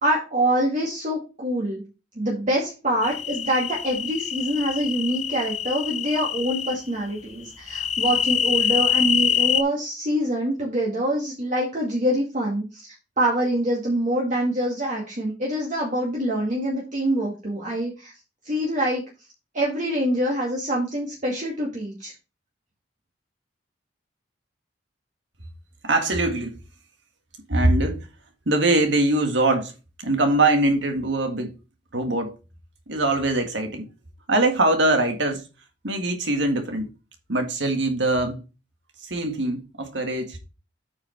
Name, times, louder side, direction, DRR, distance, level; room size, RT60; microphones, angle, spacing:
voice 1, 0.0-1.8 2.2-18.1 18.5-19.1 19.5-22.1, right 1 dB, 45° right, 2.1 m, -25 dB
sound 1, 3.0-6.7 7.7-9.6, left 8 dB, 35° left, 0.6 m, -25 dB
voice 2, 25.8-26.6 27.5-28.1 28.5-29.7 30.0-31.5 31.9-32.3 32.9-33.9 34.3-35.4 35.8-36.9 37.3-38.4 39.0-40.4, right 2 dB, 75° right, 1.9 m, -22 dB
8.6 x 4.9 x 4.5 m
head